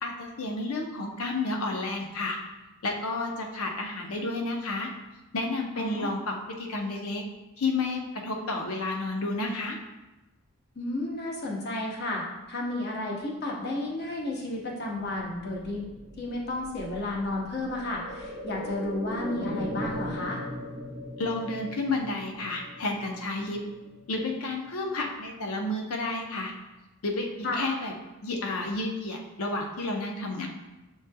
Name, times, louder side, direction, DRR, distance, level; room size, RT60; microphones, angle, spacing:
voice 1, 0.0-2.4 2.8-4.9 5.3-7.2 7.6-9.8 21.2-23.6 24.1-26.5 27.0-27.3 27.5-27.9 28.2-30.5, left 2 dB, 80° left, 2 dB, 0.7 m, -31 dB
voice 2, 5.8-6.1 10.7-15.9 16.2-20.4 27.4-27.6, left 2 dB, 45° left, -2 dB, 0.8 m, -32 dB
sound 1, 14.9-24.6 25.0-25.1, equal, 25° right, 0.8 m, -39 dB
7.2 x 3.1 x 2.2 m, 1.0 s
head